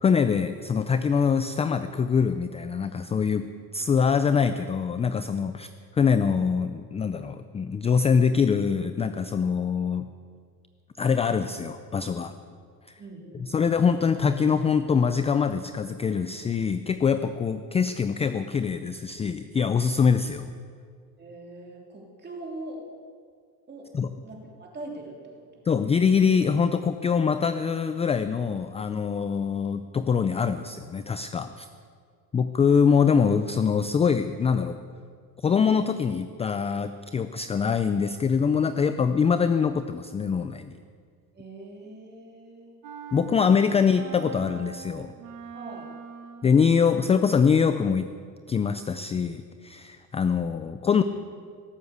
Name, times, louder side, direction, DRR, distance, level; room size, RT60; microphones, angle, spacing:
voice 1, 0.0-5.7 5.9-10.1 11.0-12.3 12.9-13.0 13.3-20.5 23.9-24.1 25.7-31.7 32.3-34.8 35.4-40.7 43.1-45.1 46.4-48.1 48.5-51.0, left 6 dB, 15° left, 11 dB, 0.3 m, -24 dB
voice 2, 13.0-13.7 21.2-22.9 23.7-23.9 24.2-25.2 25.5-25.6 32.5-32.8 41.3-42.7 45.5-45.9, right 2 dB, 25° right, -1 dB, 3.3 m, -42 dB
sound 1, 42.8-46.7, right 8 dB, 50° right, 1.5 m, -42 dB
17.5 x 7.8 x 8.1 m, 2.1 s
cardioid pair, 120°, 41 cm